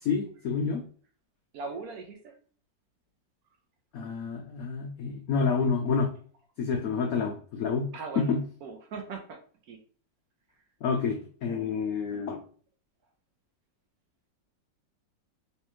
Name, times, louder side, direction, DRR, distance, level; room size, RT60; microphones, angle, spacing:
voice 1, 0.0-0.8 3.9-6.1 6.6-8.4 10.8-12.4, left 5 dB, 80° left, 3 dB, 0.8 m, -29 dB
voice 2, 1.5-2.3 7.9-9.4 9.7-9.8 11.7-11.8, right 4 dB, 70° right, 3 dB, 0.9 m, -40 dB
3.3 x 3.2 x 3.0 m, 0.43 s
omnidirectional pair, 2.1 m